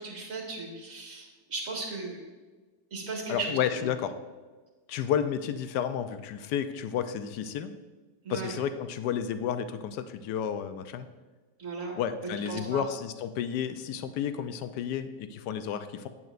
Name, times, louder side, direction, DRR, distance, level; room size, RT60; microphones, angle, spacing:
voice 1, 0.0-2.2 2.9-3.9 8.2-8.5 11.6-11.9 12.5-12.8, right 4 dB, 50° right, -1 dB, 2.1 m, -36 dB
voice 2, 3.3-4.1 4.9-7.7 8.3-11.1 12.0-16.1, left 8 dB, 75° left, 10 dB, 1.2 m, -31 dB
9.0 x 9.0 x 2.5 m, 1.3 s
omnidirectional pair, 1.9 m